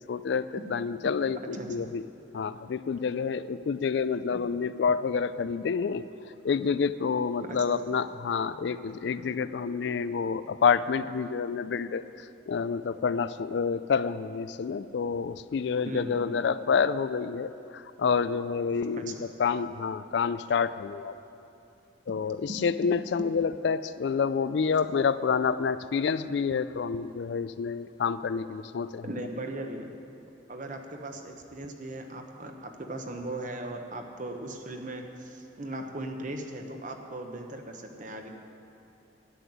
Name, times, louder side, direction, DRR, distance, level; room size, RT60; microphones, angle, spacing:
voice 1, 0.1-2.0 2.3-6.0 6.4-12.0 12.5-19.1 19.4-21.1 22.1-29.0, left 6 dB, 60° left, 14 dB, 0.3 m, -28 dB
voice 2, 1.4-1.9 4.3-4.4 7.4-7.8 15.8-16.2 18.9-19.1 22.5-22.6 29.0-29.9 30.5-38.3, right 1 dB, 40° right, 4 dB, 1.1 m, -38 dB
11.5 x 7.9 x 9.5 m, 2.7 s
head